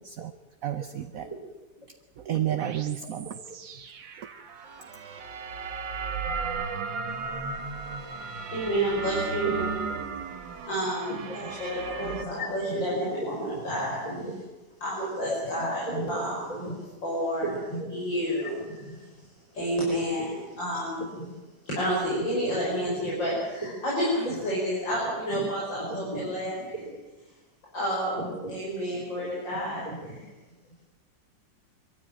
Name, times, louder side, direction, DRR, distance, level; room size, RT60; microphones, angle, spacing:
voice 1, 0.6-1.3 2.2-3.4 4.2-4.3, right 11 dB, 55° right, 9 dB, 1.2 m, -31 dB
sound 1, 2.6-12.2, right 5 dB, 80° right, 2.2 m, -35 dB
voice 2, 8.5-9.9 10.7-14.0 14.8-16.7 17.0-17.5 17.9-18.9 19.5-21.0 21.7-26.8 27.7-29.8 30.0-30.2, equal, 80° left, -6 dB, 6.8 m, -30 dB
voice 3, 11.1-11.4 11.8-13.4 13.6-13.7 14.0-14.4 15.2-15.4 15.9-16.2 16.5-16.7 17.4-17.9 18.7-18.9 21.2-21.3 22.4-22.5 23.0-23.1 24.2-24.3 25.3-25.4 25.9-26.2 26.7-27.0 28.2-28.6 29.2-29.3 29.8-30.2, right 1 dB, 15° left, 0 dB, 5.1 m, -36 dB
24.0 x 14.5 x 8.9 m, 1.2 s
omnidirectional pair, 2.0 m